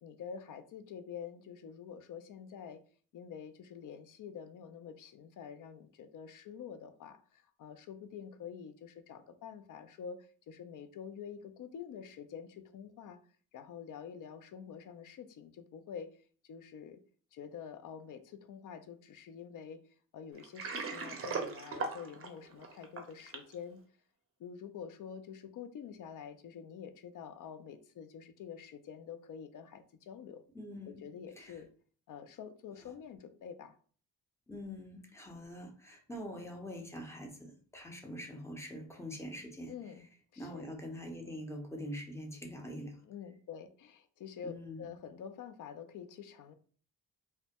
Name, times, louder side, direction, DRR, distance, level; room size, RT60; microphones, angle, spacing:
voice 1, 0.0-2.8 3.1-13.2 13.5-17.0 17.3-23.8 24.4-30.4 30.9-31.7 32.1-33.8 39.7-40.1 40.3-40.7 43.0-46.5, left 7 dB, 50° left, 0.4 m, -47 dB
Water, 20.4-23.5, right 4 dB, 35° right, 0.5 m, -39 dB
voice 2, 30.5-31.1 31.4-31.5 34.5-39.7 40.4-43.0 44.4-44.9, equal, 5° left, 0.6 m, -44 dB
2.2 x 2.1 x 2.8 m
cardioid pair, 75°, 40 cm